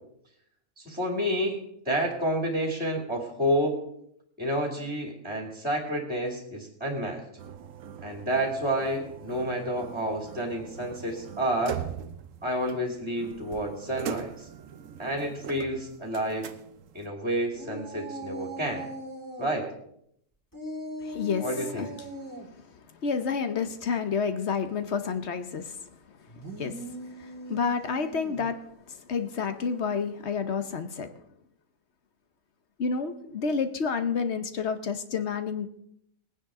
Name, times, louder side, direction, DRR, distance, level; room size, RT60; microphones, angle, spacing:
voice 1, 0.8-1.6 1.9-3.8 4.4-7.2 8.0-11.8 12.4-14.5 15.0-16.4 16.9-18.9 19.4-19.7 21.4-21.9, right 1 dB, 5° right, 1 dB, 2.5 m, -29 dB
sound 1, 7.4-17.1, right 8 dB, 60° right, 1.0 m, -41 dB
sound 2, 17.5-19.5 20.5-22.5 26.3-28.5, right 1 dB, 10° left, 2.8 m, -40 dB
voice 2, 21.0-21.5 21.7-21.9 23.0-25.8 26.6-26.8 27.2-31.1 32.8-35.7, left 5 dB, 50° left, 9 dB, 1.0 m, -29 dB
20.5 x 9.7 x 3.7 m, 0.73 s
omnidirectional pair, 1.7 m